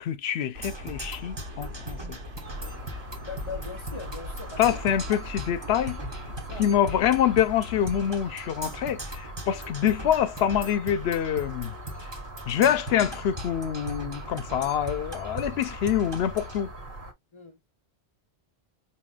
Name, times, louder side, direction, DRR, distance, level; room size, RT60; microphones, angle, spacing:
voice 1, 0.0-2.2 4.6-6.0 6.6-11.7 12.5-16.7, left 10 dB, 80° left, 0.8 m, -26 dB
sound 1, 0.5-8.1, left 1 dB, 85° right, 1.5 m, -41 dB
Percussion, 0.6-16.6, right 2 dB, 25° right, 1.0 m, -40 dB
sound 2, 2.4-17.1, equal, 55° right, 1.4 m, -42 dB
voice 2, 3.2-4.8 6.4-6.7 17.3-17.6, left 5 dB, 35° left, 0.6 m, -40 dB
4.8 x 3.0 x 2.3 m
omnidirectional pair, 1.0 m